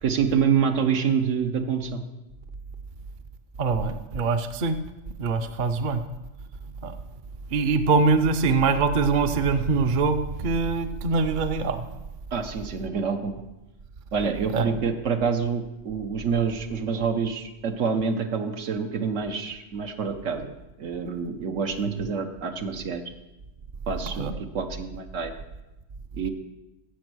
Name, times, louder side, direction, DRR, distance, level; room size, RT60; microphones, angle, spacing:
voice 1, 0.0-2.0 12.3-13.4 14.1-20.5 20.8-23.0 23.9-25.3 26.1-26.3, right 6 dB, 80° right, 6 dB, 1.2 m, -27 dB
voice 2, 3.6-4.8 5.2-6.0 6.8-6.9 7.5-11.8 14.5-14.7 21.8-21.9 24.2-24.3, right 4 dB, 50° right, 8 dB, 0.7 m, -23 dB
15.0 x 5.2 x 6.2 m, 1.0 s
omnidirectional pair, 1.3 m